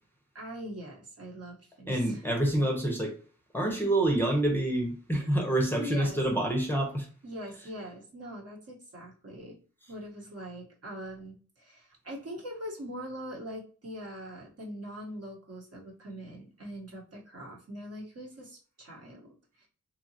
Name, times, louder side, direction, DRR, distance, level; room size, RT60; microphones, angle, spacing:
voice 1, 0.3-2.2 2.6-2.7 5.8-6.2 7.2-9.6 9.9-19.7, equal, 50° right, -2 dB, 1.1 m, -42 dB
voice 2, 1.9-3.2 3.5-7.1, right 1 dB, 5° left, 0 dB, 0.7 m, -27 dB
2.8 x 2.3 x 2.7 m, 0.40 s
cardioid pair, 50°, 31 cm